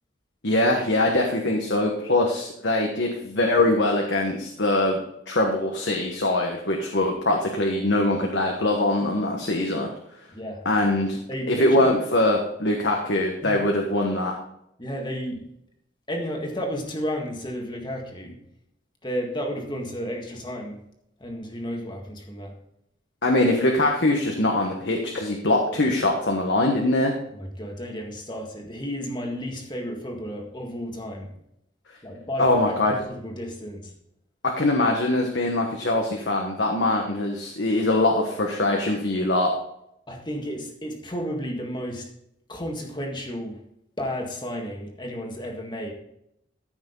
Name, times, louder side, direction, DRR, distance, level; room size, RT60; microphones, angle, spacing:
voice 1, 0.4-5.0 5.3-9.9 10.6-11.2 11.5-14.3 23.2-27.1 32.4-32.9 34.4-39.5, left 1 dB, 65° left, 1 dB, 1.3 m, -22 dB
voice 2, 10.3-10.6 11.1-11.9 13.4-13.6 14.8-15.5 16.1-18.4 19.0-20.8 21.2-22.6 27.3-31.3 32.0-32.8 33.1-33.9 40.1-42.1 42.5-43.6 44.0-45.9, equal, 25° left, 2 dB, 1.8 m, -32 dB
14.0 x 6.2 x 3.9 m, 0.77 s
head